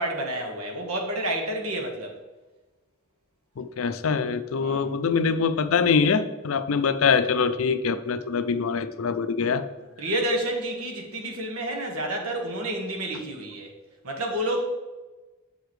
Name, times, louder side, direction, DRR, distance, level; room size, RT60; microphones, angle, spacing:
voice 1, 0.0-2.2 4.6-4.8 10.0-13.7 14.0-14.7, right 1 dB, 85° right, 2 dB, 1.5 m, -29 dB
voice 2, 3.6-9.6, left 5 dB, 70° left, 12 dB, 0.4 m, -24 dB
7.0 x 6.7 x 3.2 m, 1.2 s
head